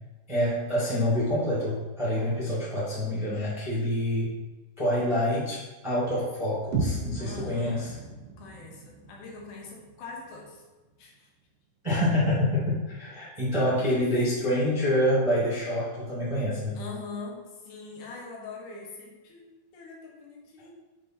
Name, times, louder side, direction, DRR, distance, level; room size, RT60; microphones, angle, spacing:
voice 1, 0.3-4.3 4.8-7.9 11.8-16.8, left 1 dB, 15° right, -8 dB, 1.1 m, -27 dB
sound 1, 6.7-10.7, right 2 dB, 80° right, 2.6 m, -35 dB
voice 2, 7.2-7.9 8.4-10.6 11.0-11.3 13.4-14.0 16.8-20.7, left 4 dB, 75° left, -1 dB, 2.4 m, -43 dB
6.8 x 3.6 x 4.4 m, 1.2 s
omnidirectional pair, 3.8 m